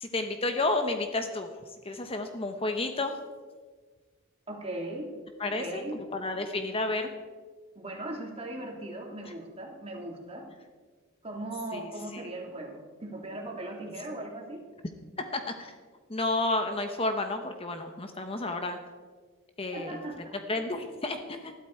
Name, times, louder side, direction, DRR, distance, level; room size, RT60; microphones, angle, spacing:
voice 1, 0.0-1.5 1.8-3.2 5.4-7.1 9.2-9.3 11.7-12.3 15.3-15.7 16.1-18.8 19.6-20.0 20.5-21.5, left 2 dB, 25° left, 6 dB, 1.0 m, -31 dB
voice 2, 4.5-6.0 7.7-10.5 11.2-14.6 19.7-20.3, right 1 dB, 30° right, 1 dB, 2.6 m, -38 dB
20.0 x 13.0 x 4.5 m, 1.4 s
head